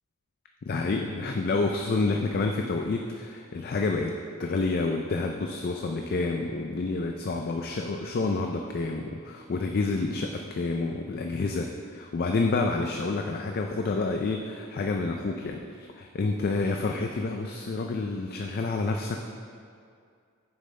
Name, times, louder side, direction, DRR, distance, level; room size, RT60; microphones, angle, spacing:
voice 1, 0.6-15.6 16.0-19.2, left 3 dB, 45° left, 3 dB, 0.4 m, -29 dB
9.2 x 7.0 x 3.3 m, 2.3 s
head